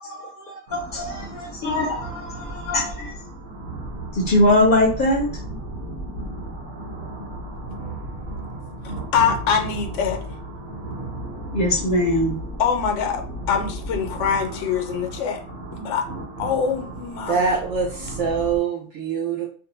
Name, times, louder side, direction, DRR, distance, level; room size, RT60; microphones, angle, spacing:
voice 1, 0.0-3.1 4.1-5.3 11.5-12.4, left 1 dB, 55° left, 0.6 m, -22 dB
sound 1, 0.7-18.6, right 1 dB, 45° right, 1.0 m, -34 dB
voice 2, 9.1-10.2 12.6-13.2 13.5-15.4 15.7-16.0 16.4-17.5, left 7 dB, 85° left, 0.9 m, -23 dB
voice 3, 17.3-19.5, right 5 dB, 80° right, 0.9 m, -24 dB
2.5 x 2.1 x 2.9 m
omnidirectional pair, 1.2 m